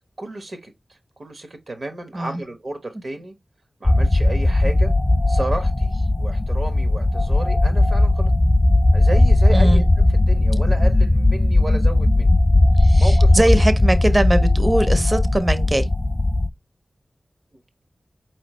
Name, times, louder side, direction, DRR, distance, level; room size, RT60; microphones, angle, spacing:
voice 1, 0.2-3.3 3.8-4.9 5.3-8.3 8.9-12.3 13.0-13.6, right 2 dB, 70° right, 1.2 m, -32 dB
sound 1, 3.9-16.5, left 2 dB, 25° left, 0.4 m, -17 dB
voice 2, 9.5-9.8 12.8-15.9, right 1 dB, 35° right, 0.7 m, -21 dB
4.8 x 3.1 x 3.0 m
wide cardioid pair, 60°, 0 cm